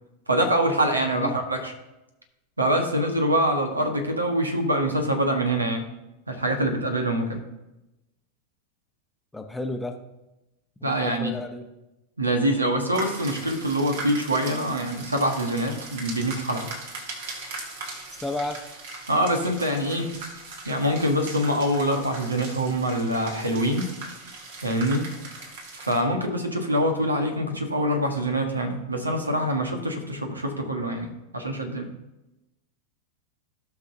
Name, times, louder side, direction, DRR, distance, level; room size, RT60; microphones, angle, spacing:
voice 1, 0.3-1.7 2.6-5.8 6.3-7.4 10.8-11.3 12.2-16.7 19.1-20.1 20.6-23.9 24.6-25.1 25.7-31.9, right 1 dB, 80° right, 4 dB, 1.4 m, -25 dB
voice 2, 9.3-10.0 10.8-11.6 18.2-18.6, left 2 dB, 5° left, 4 dB, 0.9 m, -32 dB
sound 1, 12.9-26.0, right 3 dB, 55° right, 1.9 m, -39 dB
17.0 x 6.0 x 2.8 m, 0.97 s
figure-of-eight pair, 90°, 0 cm